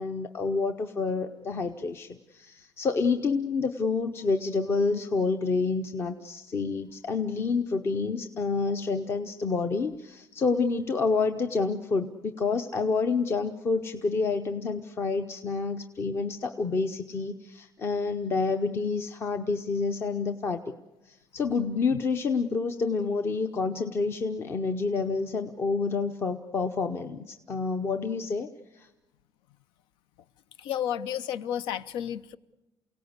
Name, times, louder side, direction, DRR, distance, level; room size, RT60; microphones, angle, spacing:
voice 1, 0.0-20.7 21.0-28.5 28.7-28.9, left 4 dB, 30° left, 8 dB, 0.7 m, -28 dB
voice 2, 30.6-32.4, left 10 dB, 85° left, 16 dB, 0.7 m, -31 dB
28.5 x 17.5 x 8.0 m, 1.0 s
cardioid pair, 165°, 8 cm